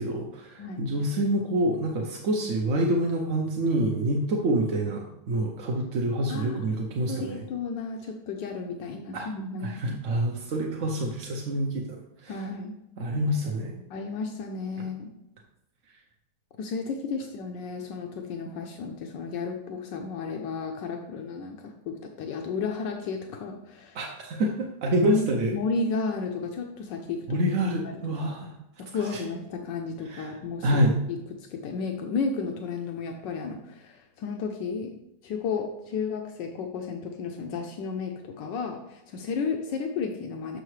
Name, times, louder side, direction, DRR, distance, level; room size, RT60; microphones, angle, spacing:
voice 1, 0.0-7.4 9.1-9.3 9.6-12.4 13.0-13.8 23.9-25.5 27.3-28.5 29.1-29.2 30.0-30.3 30.6-31.0, right 1 dB, 55° right, 0 dB, 0.9 m, -27 dB
voice 2, 6.3-6.7 7.1-10.0 12.3-12.7 13.9-15.1 16.6-24.0 25.0-27.5 28.0-28.3 28.8-30.7 31.1-31.2 31.5-34.9 35.2-40.6, left 4 dB, 80° left, 3 dB, 1.3 m, -33 dB
6.6 x 6.5 x 3.2 m, 0.86 s
omnidirectional pair, 1.9 m